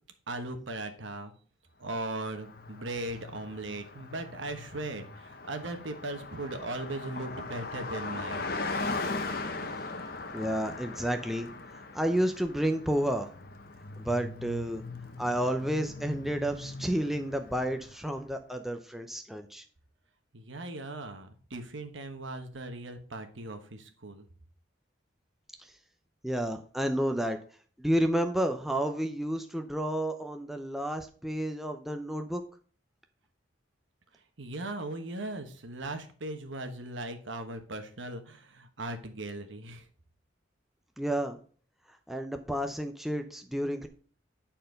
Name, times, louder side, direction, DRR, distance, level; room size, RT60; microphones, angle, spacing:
voice 1, 0.3-1.3 1.8-8.5 20.3-24.2 34.4-39.9, right 2 dB, 75° right, 7 dB, 1.3 m, -38 dB
Car passing by, 2.1-18.1, left 3 dB, 50° left, 0.9 m, -39 dB
voice 2, 10.3-11.5 11.9-13.3 14.0-14.8 15.2-19.6 26.2-27.4 27.8-32.4 41.0-41.4 42.1-43.9, right 1 dB, ahead, 5 dB, 0.6 m, -30 dB
9.9 x 4.4 x 5.2 m, 0.43 s
head